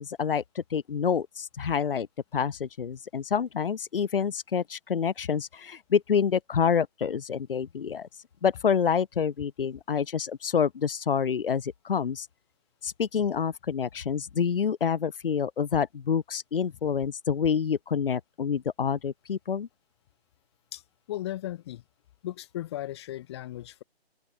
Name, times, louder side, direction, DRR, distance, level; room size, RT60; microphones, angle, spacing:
voice 1, 0.0-2.1 2.3-8.1 8.4-12.3 12.8-19.7, left 7 dB, 55° left, 2.6 m, -27 dB
voice 2, 21.1-21.8 22.2-23.8, left 14 dB, 25° left, 2.0 m, -36 dB
open air
hypercardioid pair, 165°, 32 cm